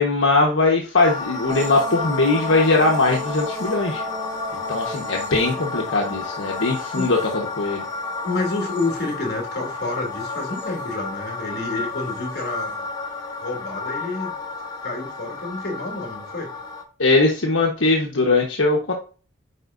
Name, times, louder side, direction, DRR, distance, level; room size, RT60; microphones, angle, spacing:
voice 1, 0.0-4.0 4.7-7.8 17.0-18.9, left 3 dB, 70° left, -1 dB, 1.3 m, -20 dB
sound 1, 1.0-16.8, left 4 dB, 20° left, 1.1 m, -32 dB
sound 2, 1.5-9.7 10.1-10.9 12.1-12.5, equal, 35° right, 2.9 m, -36 dB
voice 2, 8.2-12.9 13.4-14.3 14.8-16.5, left 2 dB, 50° left, 0 dB, 2.9 m, -29 dB
9.8 x 4.7 x 2.7 m, 0.36 s
head